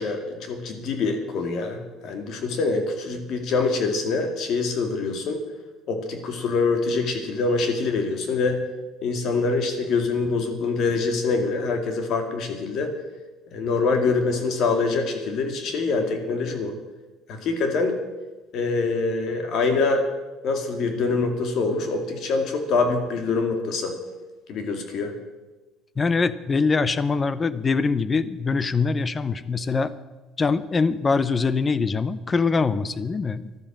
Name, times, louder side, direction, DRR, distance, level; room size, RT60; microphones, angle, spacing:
voice 1, 0.0-5.4 5.9-8.6 9.0-12.9 13.5-16.7 17.3-17.9 18.5-20.0 20.4-23.9 24.5-25.1, left 4 dB, 50° left, 5 dB, 2.4 m, -25 dB
voice 2, 26.0-29.9 30.4-33.5, left 4 dB, 20° left, 16 dB, 0.7 m, -23 dB
14.0 x 12.0 x 7.4 m, 1.2 s
cardioid pair, 155°, 0 cm